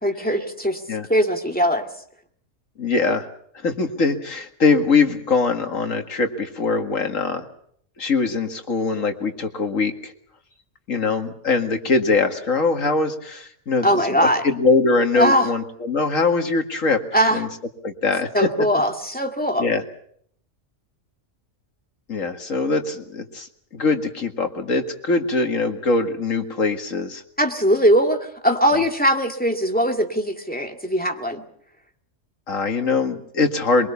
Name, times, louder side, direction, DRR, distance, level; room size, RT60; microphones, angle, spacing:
voice 1, 0.0-0.8 1.1-1.9 13.8-14.4 15.2-15.5 17.1-17.4 18.3-19.7 27.4-31.4, equal, 5° left, 3 dB, 2.2 m, -20 dB
voice 2, 2.8-3.3 3.6-7.4 8.0-10.1 10.9-17.0 17.3-17.5 17.8-18.3 19.6-19.8 22.1-23.5 23.7-27.2 32.5-33.9, left 4 dB, 80° left, 5 dB, 2.3 m, -22 dB
23.0 x 23.0 x 7.0 m, 0.65 s
omnidirectional pair, 1.3 m